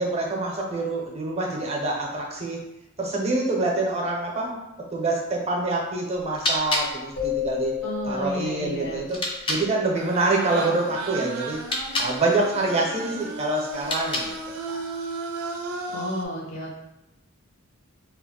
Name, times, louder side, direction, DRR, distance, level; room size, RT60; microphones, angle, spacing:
voice 1, 0.0-2.6 3.0-4.6 4.9-7.7 8.1-9.2 9.5-11.6 12.0-14.3 14.7-14.8, right 2 dB, 30° right, -1 dB, 0.5 m, -26 dB
sound 1, 6.1-9.7 11.5-12.2 13.7-14.5, left 1 dB, 25° left, 0.3 m, -31 dB
sound 2, 7.2-9.8, left 11 dB, 85° left, 1.2 m, -32 dB
voice 2, 7.8-9.1 15.9-16.8, equal, 60° left, -4 dB, 0.6 m, -32 dB
sound 3, 9.9-16.2, right 3 dB, 85° right, 0.4 m, -34 dB
2.3 x 2.0 x 3.6 m, 0.94 s
head